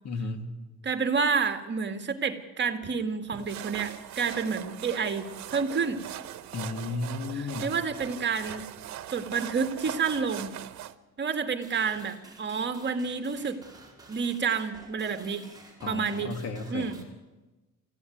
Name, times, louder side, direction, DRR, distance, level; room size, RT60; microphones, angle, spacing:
voice 1, 0.0-0.5 6.5-7.7 15.8-16.9, left 3 dB, 60° left, 6 dB, 2.9 m, -34 dB
voice 2, 0.8-6.0 7.3-8.7 9.1-10.5 11.2-13.6 14.1-15.4 15.9-16.3 16.7-17.0, right 5 dB, 40° right, 7 dB, 1.9 m, -29 dB
sound 1, 3.3-10.9, right 12 dB, 70° right, 1.2 m, -41 dB
sound 2, 11.6-17.0, right 3 dB, 15° right, 4.7 m, -51 dB
25.5 x 15.5 x 9.4 m, 1.2 s
cardioid pair, 115°, 29 cm